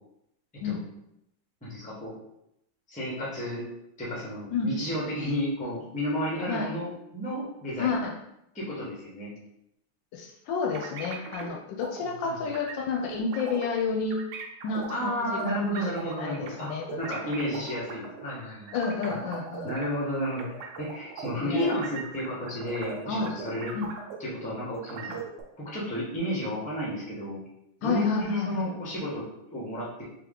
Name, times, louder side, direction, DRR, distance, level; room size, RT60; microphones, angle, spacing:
voice 1, 1.6-2.1 2.9-3.6 4.0-8.0 8.5-9.3 12.2-12.3 14.9-16.7 17.0-18.7 19.0-19.2 19.6-23.7 24.2-25.1 25.6-27.4 27.8-29.2 29.5-29.9, equal, 10° left, -5 dB, 0.5 m, -32 dB
voice 2, 6.4-6.7 7.8-8.1 10.1-14.2 14.6-15.6 16.0-17.0 17.4-17.7 18.7-19.7 21.4-21.8 23.1-23.3 23.7-23.9 25.0-25.2 27.8-28.7, left 4 dB, 75° left, 2 dB, 1.2 m, -30 dB
sound 1, 10.7-11.5 11.8-12.0 12.5-13.8 14.1-19.9 20.2-24.4 24.7-25.4, right 6 dB, 70° right, 1.3 m, -39 dB
3.7 x 2.8 x 3.6 m, 0.81 s
omnidirectional pair, 2.2 m